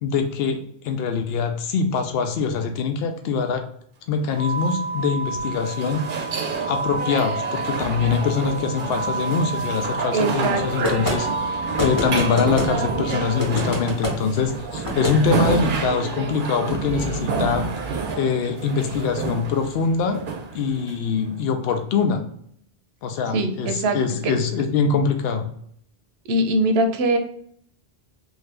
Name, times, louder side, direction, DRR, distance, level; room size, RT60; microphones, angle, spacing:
voice 1, 0.0-3.7 4.1-6.0 6.7-17.7 18.2-20.2 20.5-22.2 23.0-25.5, left 5 dB, 75° left, 6 dB, 0.8 m, -23 dB
sound 1, 4.3-21.3, right 4 dB, 60° right, 0.7 m, -29 dB
sound 2, 4.4-13.4, right 3 dB, 10° right, 0.5 m, -31 dB
voice 2, 10.1-10.9 23.3-24.0 24.2-24.4 26.3-27.2, right 1 dB, 90° right, 6 dB, 0.8 m, -22 dB
sound 3, 10.8-11.2 11.8-12.7 13.4-14.2 14.8-15.2, equal, 20° left, 0.8 m, -25 dB
2.7 x 2.5 x 3.2 m, 0.66 s
omnidirectional pair, 1.0 m